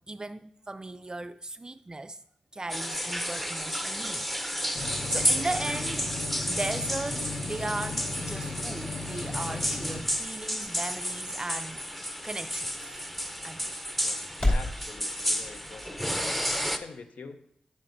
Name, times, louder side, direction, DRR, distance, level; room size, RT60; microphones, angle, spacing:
voice 1, 0.1-2.2 2.5-4.2 4.8-6.1 6.5-11.9 12.2-13.0 13.4-13.7, right 2 dB, 30° right, 0.3 m, -37 dB
sound 1, 2.7-16.8, equal, 5° left, 0.6 m, -32 dB
sound 2, 4.7-10.0, left 3 dB, 60° left, 1.5 m, -37 dB
sound 3, 8.5-14.8, left 1 dB, 40° left, 2.5 m, -36 dB
voice 2, 14.0-17.4, left 4 dB, 80° left, 0.7 m, -45 dB
10.0 x 7.3 x 2.6 m
cardioid pair, 50°, 3 cm